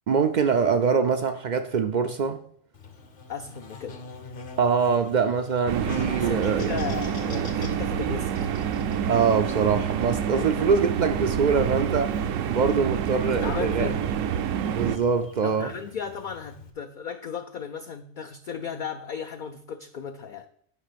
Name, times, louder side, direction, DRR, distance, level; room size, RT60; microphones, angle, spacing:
voice 1, 0.1-2.4 4.6-6.8 9.1-13.9 14.7-15.7, right 5 dB, 70° right, 0.4 m, -24 dB
Buzz, 2.7-16.7, left 4 dB, 50° left, 1.0 m, -45 dB
voice 2, 3.3-4.0 6.2-8.5 10.3-10.6 13.2-14.1 15.4-20.5, left 6 dB, 65° left, 0.5 m, -35 dB
sound 1, 5.7-15.0, right 8 dB, 85° right, 1.0 m, -28 dB
8.4 x 5.3 x 5.1 m
omnidirectional pair, 1.3 m